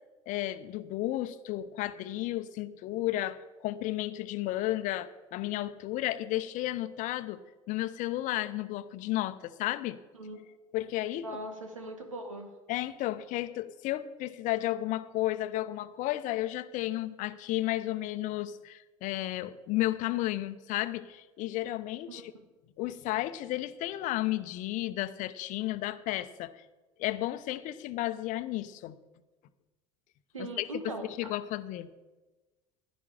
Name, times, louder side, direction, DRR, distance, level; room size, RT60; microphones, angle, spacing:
voice 1, 0.3-10.0 10.7-11.3 12.7-22.3 22.8-26.6 27.0-29.0 30.4-31.9, left 15 dB, 50° left, 13 dB, 0.8 m, -33 dB
voice 2, 11.2-12.5 22.1-22.2 30.3-31.3, right 1 dB, 85° right, 5 dB, 1.8 m, -40 dB
15.5 x 11.0 x 5.0 m, 1.2 s
figure-of-eight pair, 65°, 16 cm